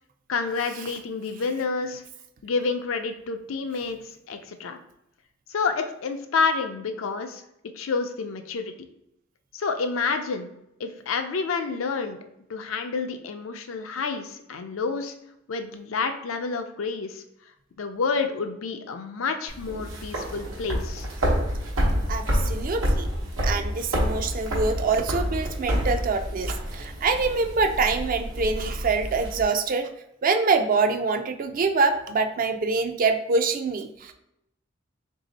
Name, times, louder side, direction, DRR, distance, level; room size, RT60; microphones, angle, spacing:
voice 1, 0.3-2.0 2.4-4.0 4.3-4.8 5.5-7.4 7.8-8.9 9.5-10.5 10.8-12.2 12.5-15.1 15.5-17.2 17.8-21.1, left 4 dB, 85° left, 7 dB, 0.5 m, -29 dB
sound 1, 19.5-29.4, equal, 85° right, 1.0 m, -28 dB
voice 2, 22.1-23.1 23.4-29.9 30.2-34.1, right 4 dB, 45° right, 8 dB, 0.4 m, -25 dB
3.3 x 2.7 x 4.0 m, 0.82 s
head